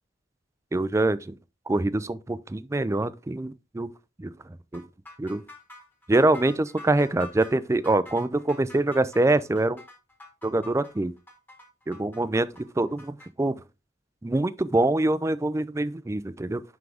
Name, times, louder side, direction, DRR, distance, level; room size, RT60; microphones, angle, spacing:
voice 1, 0.7-1.4 1.7-3.9 4.2-4.3 4.7-4.8 5.2-5.4 6.1-9.8 10.4-11.1 11.9-13.6 14.2-16.6, right 2 dB, 15° right, 0.4 m, -25 dB
sound 1, 4.7-13.3, left 2 dB, 10° left, 1.2 m, -47 dB
9.3 x 3.7 x 3.4 m
head